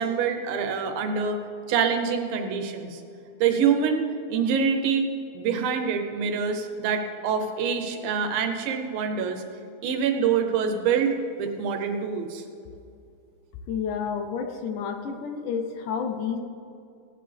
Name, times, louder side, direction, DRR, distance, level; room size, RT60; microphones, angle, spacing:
voice 1, 0.0-1.4 1.7-3.0 3.4-5.1 5.3-9.4 9.8-12.4, right 6 dB, 80° right, 5 dB, 2.7 m, -25 dB
voice 2, 13.7-16.4, left 6 dB, 75° left, 6 dB, 1.9 m, -30 dB
17.5 x 9.9 x 3.4 m, 2.5 s
omnidirectional pair, 4.2 m